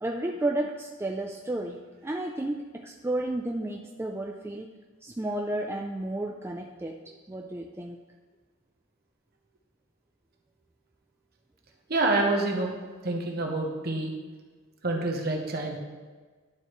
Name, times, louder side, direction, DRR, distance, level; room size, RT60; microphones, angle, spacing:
voice 1, 0.0-4.7 5.0-8.0, right 1 dB, 10° right, 1 dB, 0.3 m, -32 dB
voice 2, 11.9-12.7 13.0-14.1 14.8-15.8, right 2 dB, 50° right, 1 dB, 1.1 m, -27 dB
11.5 x 4.6 x 3.2 m, 1.4 s
head